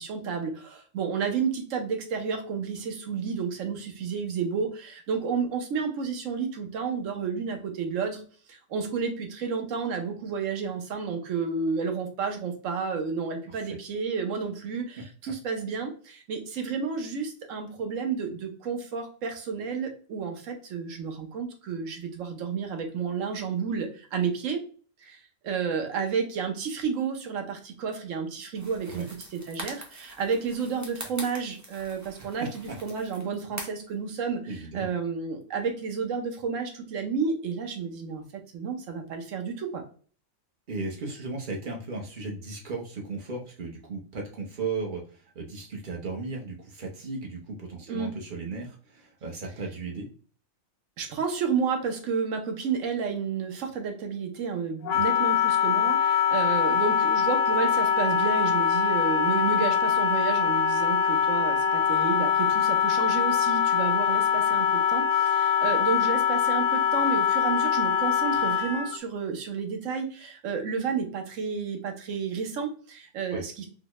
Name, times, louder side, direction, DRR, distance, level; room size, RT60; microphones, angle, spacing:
voice 1, 0.0-8.2 8.5-24.6 25.0-34.4 34.7-39.8 47.9-48.1 51.0-73.7, right 5 dB, 70° right, 4 dB, 1.1 m, -31 dB
sound 1, 28.6-33.9, right 1 dB, 25° right, 0.4 m, -43 dB
voice 2, 34.5-34.9 40.7-50.1 54.9-55.0 73.3-73.4, right 3 dB, 45° right, 0 dB, 0.9 m, -36 dB
Wind instrument woodwind instrument, 54.8-69.0, left 8 dB, 75° left, 0.4 m, -23 dB
3.9 x 2.2 x 3.0 m, 0.41 s
omnidirectional pair, 1.4 m